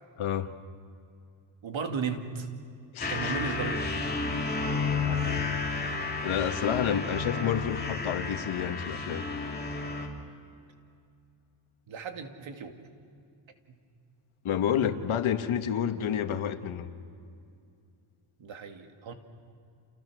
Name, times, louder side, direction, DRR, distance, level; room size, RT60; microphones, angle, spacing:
voice 1, 0.2-0.5 2.9-3.3 4.9-5.4 6.2-9.2 14.4-16.9, left 9 dB, 90° left, 9 dB, 1.6 m, -29 dB
voice 2, 1.6-2.5 3.1-4.1 11.9-12.7 13.7-13.8 18.4-19.1, right 6 dB, 75° right, 6 dB, 2.5 m, -35 dB
sound 1, 3.0-10.1, left 4 dB, 20° left, 3.1 m, -31 dB
29.5 x 29.0 x 6.3 m, 2.4 s
wide cardioid pair, 135°, 47 cm